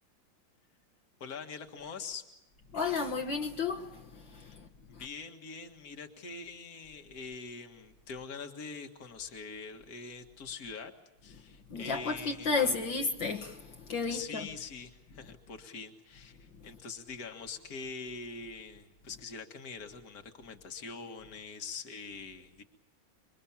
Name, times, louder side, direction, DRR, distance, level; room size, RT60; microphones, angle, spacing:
voice 1, 1.2-2.2 4.9-10.9 11.2-12.8 14.1-22.6, left 5 dB, 45° left, 2.2 m, -44 dB
voice 2, 2.7-3.9 4.3-4.5 11.7-13.6 13.9-14.5, left 4 dB, 65° left, 2.2 m, -32 dB
27.0 x 24.0 x 7.3 m
omnidirectional pair, 2.3 m